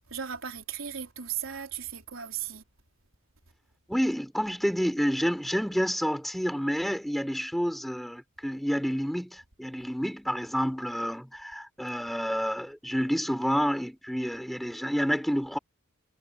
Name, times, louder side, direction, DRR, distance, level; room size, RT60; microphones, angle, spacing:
voice 1, 0.1-2.6, right 8 dB, 80° right, 3.9 m, -36 dB
voice 2, 3.9-15.6, equal, ahead, 3.8 m, -29 dB
head